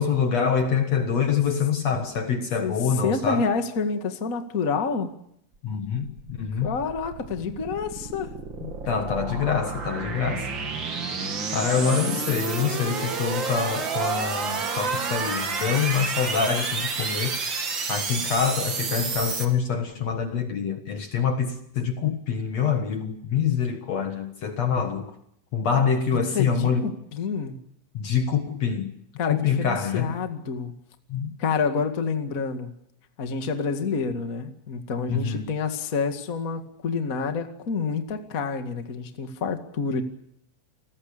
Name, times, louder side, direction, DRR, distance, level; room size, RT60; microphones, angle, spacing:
voice 1, 0.0-3.5 5.6-6.7 8.6-10.5 11.5-17.3 17.9-25.1 25.5-26.8 27.9-28.9 29.3-30.2 31.1-31.3 35.1-35.4, left 6 dB, 65° left, 1.7 m, -25 dB
voice 2, 3.0-5.1 6.6-8.3 26.1-27.6 29.2-30.7 31.4-32.7 33.2-40.0, left 5 dB, 80° left, 0.7 m, -28 dB
sound 1, 6.2-19.4, right 4 dB, 35° right, 2.0 m, -30 dB
sound 2, 10.1-15.3, right 11 dB, 85° right, 4.6 m, -47 dB
29.0 x 20.0 x 6.8 m
omnidirectional pair, 5.3 m